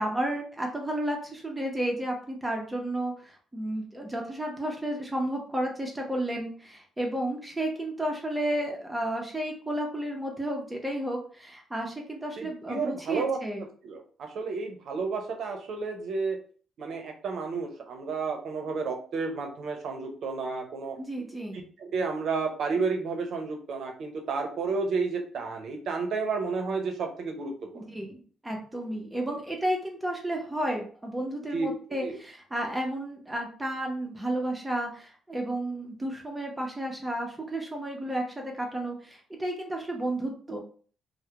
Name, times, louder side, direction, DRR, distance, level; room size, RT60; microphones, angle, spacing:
voice 1, 0.0-13.7 21.0-21.6 27.7-40.6, right 1 dB, 15° right, 1 dB, 0.6 m, -32 dB
voice 2, 12.4-13.4 13.8-16.4 16.8-21.0 21.5-27.9 31.5-31.7 32.0-32.2, right 4 dB, 65° right, 4 dB, 0.6 m, -31 dB
2.3 x 2.0 x 2.8 m, 0.43 s
cardioid pair, 90°, 0 cm